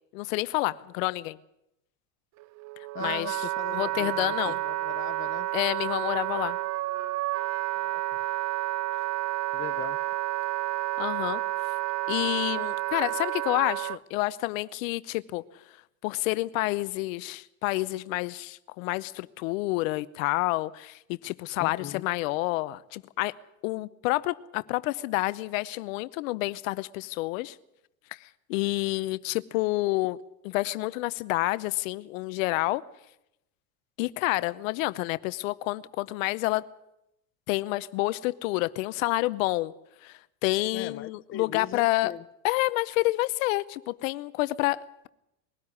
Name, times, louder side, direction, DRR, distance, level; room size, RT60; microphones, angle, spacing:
voice 1, 0.1-1.4 3.0-3.4 3.7-4.6 5.5-6.6 11.0-11.4 12.1-15.4 16.0-23.3 23.6-27.6 28.1-30.2 30.5-32.8 34.0-36.6 37.5-39.7 40.0-42.1 42.4-45.1, left 20 dB, 70° left, 0.8 m, -29 dB
Wind instrument woodwind instrument, 2.4-14.0, right 16 dB, 45° right, 0.7 m, -30 dB
voice 2, 2.9-5.5 7.7-8.2 9.5-10.0 21.6-22.0 40.7-42.3, left 11 dB, 30° left, 0.7 m, -40 dB
21.5 x 13.0 x 9.7 m
supercardioid pair, 100°, 41 cm